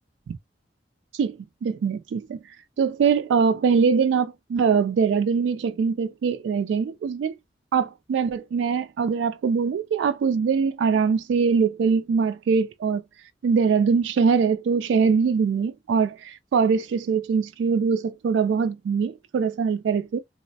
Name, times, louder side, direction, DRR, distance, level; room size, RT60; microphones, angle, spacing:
voice 1, 1.1-2.4 2.8-7.3 7.7-13.0 13.4-20.2, right 5 dB, 90° right, 0.3 m, -22 dB
2.9 x 2.0 x 2.6 m
head